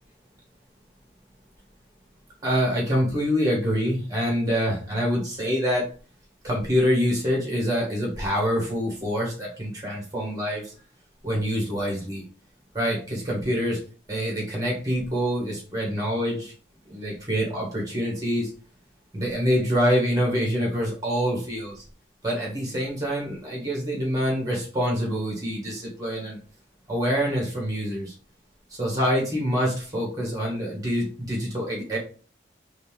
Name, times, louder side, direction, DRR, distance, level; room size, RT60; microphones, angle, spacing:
voice 1, 2.4-5.9 6.4-10.7 11.2-12.2 12.7-13.8 14.1-16.5 16.9-18.5 19.1-21.8 22.2-26.4 26.9-28.1 28.7-32.0, equal, 20° right, -2 dB, 1.9 m, -26 dB
4.1 x 3.5 x 3.5 m, 0.39 s
head